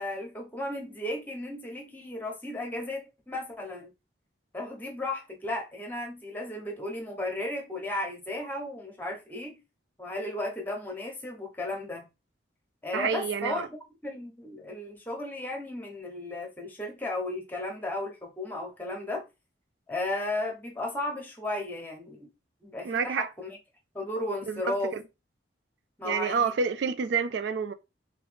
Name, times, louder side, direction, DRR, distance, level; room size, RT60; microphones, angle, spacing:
voice 1, 0.0-3.9 4.5-9.6 10.0-12.1 12.8-13.7 14.0-19.2 19.9-22.3 22.6-23.6 23.9-24.9 26.0-26.5, left 1 dB, 10° left, 1.0 m, -34 dB
voice 2, 12.9-13.7 22.8-23.3 24.5-25.0 26.0-27.7, right 6 dB, 70° right, 0.3 m, -28 dB
3.5 x 3.1 x 3.3 m
head